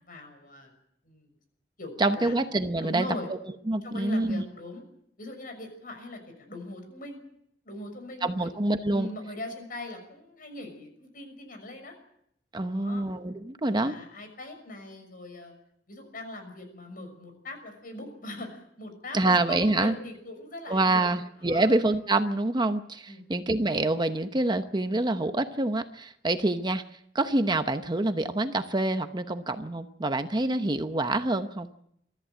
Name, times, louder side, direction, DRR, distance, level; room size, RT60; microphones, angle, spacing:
voice 1, 0.1-0.7 1.0-1.3 1.8-2.3 2.8-3.3 3.8-4.8 5.2-7.2 7.6-8.5 8.9-11.9 12.6-13.1 13.6-15.6 15.9-21.1 21.4-21.7 23.1-23.2, left 2 dB, 55° left, 6 dB, 6.2 m, -41 dB
voice 2, 2.0-3.1 3.7-4.4 8.2-9.1 12.5-14.0 19.1-19.9 20.7-26.8 27.1-31.7, right 2 dB, 25° right, 9 dB, 0.9 m, -26 dB
23.0 x 14.0 x 9.1 m, 0.73 s
head